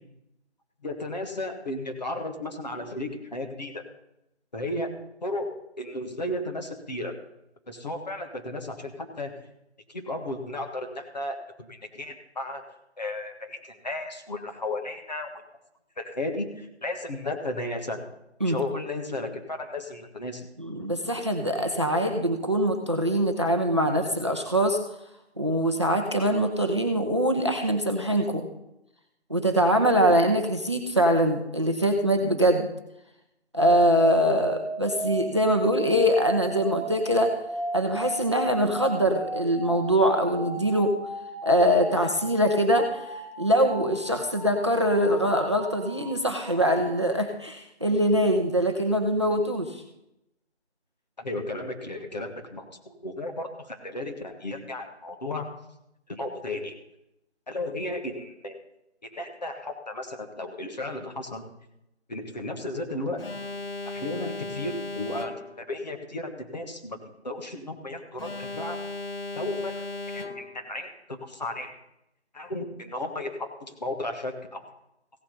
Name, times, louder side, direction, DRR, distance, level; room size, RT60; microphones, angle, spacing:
voice 1, 0.8-3.8 4.5-4.9 5.2-5.5 5.8-7.1 7.7-9.3 9.9-12.6 13.0-15.3 16.0-18.0 18.4-20.5 51.2-55.4 56.1-56.7 57.5-58.6 59.1-61.4 62.1-63.2 63.8-67.0 67.2-68.8 69.3-69.8 70.1-71.7 72.3-74.6, left 1 dB, 40° left, 3 dB, 1.7 m, -34 dB
voice 2, 20.6-24.8 25.4-28.5 29.3-32.7 33.5-37.3 37.7-40.9 41.4-49.8, equal, 25° right, 4 dB, 0.8 m, -23 dB
sound 1, 34.0-46.9, right 1 dB, 5° left, 3.5 m, -36 dB
Alarm, 63.2-65.7 68.2-70.7, left 3 dB, 60° left, 1.0 m, -36 dB
16.0 x 7.3 x 5.4 m, 0.83 s
figure-of-eight pair, 165°, 34 cm